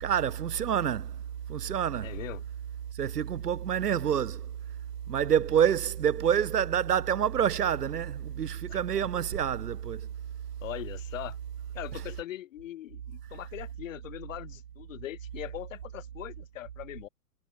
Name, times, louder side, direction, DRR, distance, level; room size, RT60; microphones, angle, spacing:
voice 1, 0.0-1.2 1.5-2.1 2.9-4.5 5.1-10.0, right 9 dB, 75° right, 1.2 m, -27 dB
voice 2, 2.0-2.4 8.7-9.1 10.6-11.4 11.7-17.1, left 13 dB, 55° left, 1.5 m, -41 dB
figure-of-eight pair, 110°, 48 cm